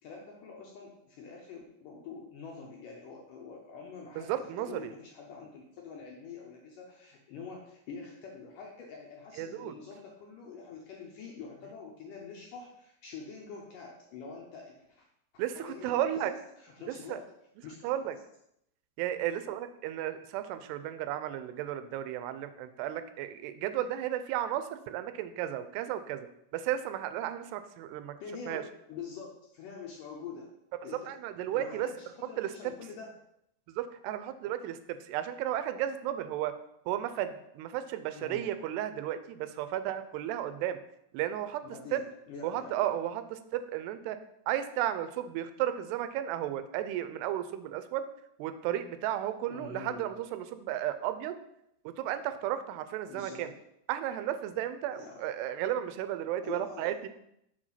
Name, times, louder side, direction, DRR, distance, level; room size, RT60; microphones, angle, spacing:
voice 1, 0.0-4.3 4.6-15.1 15.3-17.2 17.6-17.9 28.2-30.5 30.8-31.2 31.6-33.1 38.1-38.4 41.6-42.9 49.5-50.1 53.1-53.5 54.9-55.2 56.4-56.9, left 5 dB, 70° left, -1 dB, 2.1 m, -45 dB
voice 2, 4.2-4.9 9.4-9.8 15.4-16.3 16.9-17.2 17.8-18.2 19.0-26.3 26.5-28.2 28.5-28.6 31.1-31.9 32.4-32.5 33.7-36.6 36.9-40.8 41.1-41.6 41.9-42.0 42.4-44.2 44.5-48.1 48.4-51.4 51.9-53.5 53.9-57.1, right 11 dB, 90° right, 11 dB, 2.7 m, -34 dB
6.6 x 5.0 x 5.6 m, 0.78 s
omnidirectional pair, 4.6 m